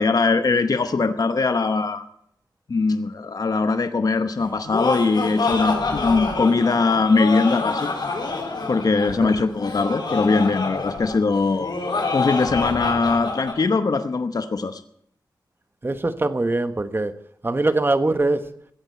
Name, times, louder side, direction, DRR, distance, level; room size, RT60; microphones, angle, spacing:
voice 1, 0.0-2.0 2.7-7.9 8.7-11.7 12.1-14.8, left 4 dB, 55° left, 9 dB, 0.9 m, -21 dB
Laughter, 4.4-13.6, left 3 dB, 75° left, 4.1 m, -27 dB
voice 2, 15.8-17.1 17.4-18.4, right 2 dB, 30° right, 10 dB, 1.3 m, -22 dB
16.0 x 8.9 x 8.4 m, 0.70 s
wide cardioid pair, 80°, 8 cm